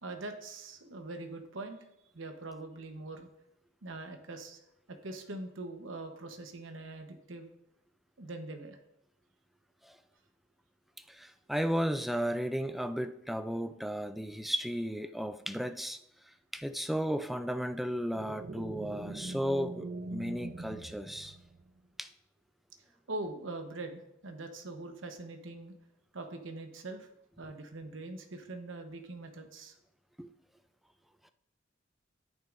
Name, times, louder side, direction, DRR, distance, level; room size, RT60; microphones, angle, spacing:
voice 1, 0.0-1.8 2.1-3.3 3.8-4.6 4.9-7.5 8.2-8.8 19.5-19.6 23.1-25.7 26.1-27.1 27.4-29.7, right 2 dB, 85° right, 1.0 m, -42 dB
voice 2, 11.1-16.0 16.5-21.4 22.0-22.1 30.2-30.3, equal, ahead, 0.3 m, -34 dB
sound 1, 18.1-21.8, right 2 dB, 50° right, 0.6 m, -42 dB
10.5 x 9.1 x 2.6 m
head